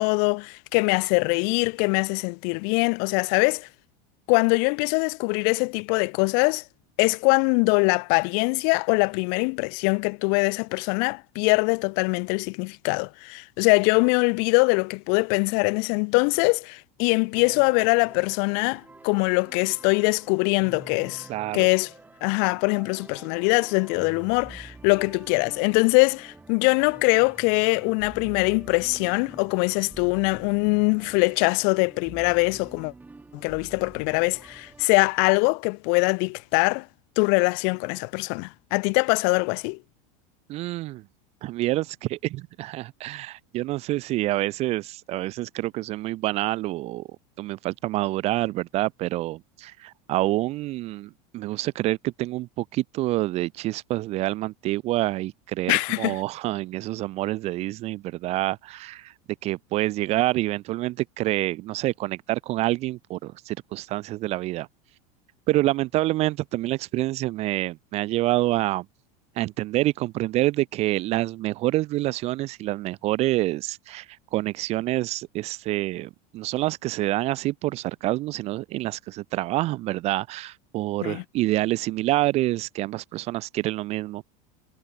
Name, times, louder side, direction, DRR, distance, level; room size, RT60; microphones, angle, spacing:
voice 1, 0.0-3.7 4.3-6.6 7.0-21.3 21.5-21.9 22.2-32.9 33.3-36.9 37.2-39.8 55.7-56.2 81.0-81.2, left 40 dB or more, 50° left, 1.0 m, -23 dB
sound 1, 17.3-34.9, right 3 dB, 10° right, 3.6 m, -47 dB
voice 2, 21.3-21.7 40.5-41.0 41.4-47.0 47.4-59.1 59.4-64.7 65.5-68.8 69.4-74.1 74.3-84.2, right 17 dB, 30° right, 0.6 m, -27 dB
supercardioid pair, 165°, 20 cm